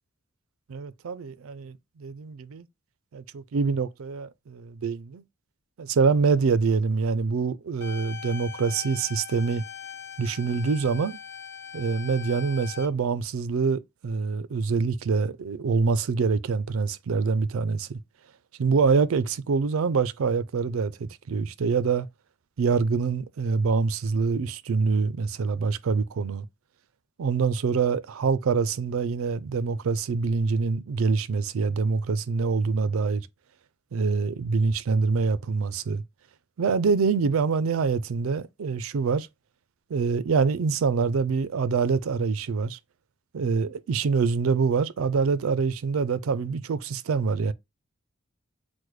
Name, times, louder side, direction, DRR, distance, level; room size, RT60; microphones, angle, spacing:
voice 1, 0.7-2.6 3.1-5.2 5.8-9.6 10.2-11.2 11.7-18.0 18.6-22.1 22.6-26.4 27.2-33.3 33.9-36.0 36.6-39.3 39.9-42.8 43.3-47.5, right 5 dB, 80° right, 0.4 m, -25 dB
sound 1, 7.8-12.9, left 8 dB, 50° left, 0.9 m, -41 dB
6.1 x 2.1 x 3.1 m
head